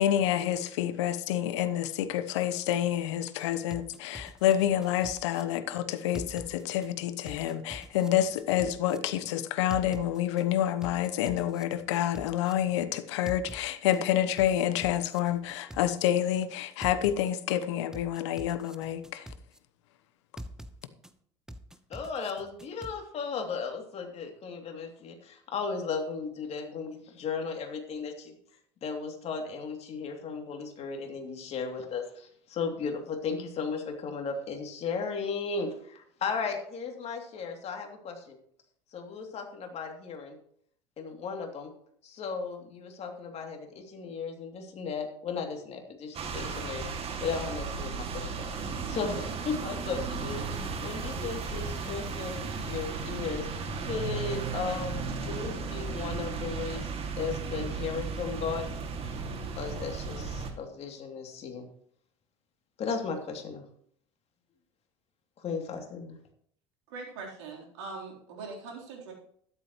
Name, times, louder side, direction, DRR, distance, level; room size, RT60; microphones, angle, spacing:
voice 1, 0.0-19.3, left 11 dB, 70° left, 1.0 m, -28 dB
sound 1, 3.7-5.4 6.1-6.9 7.3-9.0 9.7-10.4 10.8-12.5 13.3-14.0 14.4-16.1 16.8-17.5 17.9-19.6 20.4-21.1 21.5-22.9, equal, 5° right, 1.0 m, -44 dB
voice 2, 21.9-28.3 28.8-38.4 38.9-40.4 41.0-41.7 42.0-46.9 47.2-48.5 48.9-53.5 53.8-56.9 57.2-58.7 59.0-59.2 59.6-61.7 62.8-63.6 65.4-66.2, left 5 dB, 45° left, 2.9 m, -35 dB
sound 2, 46.1-60.5, right 4 dB, 40° right, 2.3 m, -35 dB
voice 3, 66.9-69.1, right 4 dB, 75° right, 3.9 m, -42 dB
13.0 x 11.0 x 3.1 m
hypercardioid pair, 75°, 15 cm